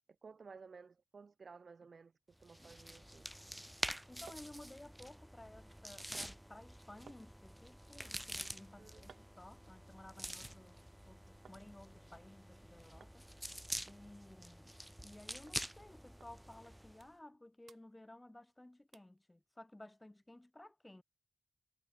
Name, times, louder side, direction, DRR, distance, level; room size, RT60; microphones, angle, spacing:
voice 1, 0.2-2.1 2.4-3.3 8.8-9.0, right 5 dB, 65° right, 7.2 m, -56 dB
sound 1, 2.4-17.1, equal, 5° right, 0.6 m, -47 dB
voice 2, 4.1-10.8 11.1-13.3 13.7-14.7 15.0-21.0, left 1 dB, 20° left, 3.7 m, -56 dB
sound 2, 9.1-11.6 12.0-12.6 13.0-13.2 13.5-13.6 13.9-15.2 15.5-15.6 16.2-16.3 16.7-17.4 17.6-18.5 18.9-19.2 19.7-19.8, right 6 dB, 90° right, 7.2 m, -65 dB
cardioid pair, 70°, 0 cm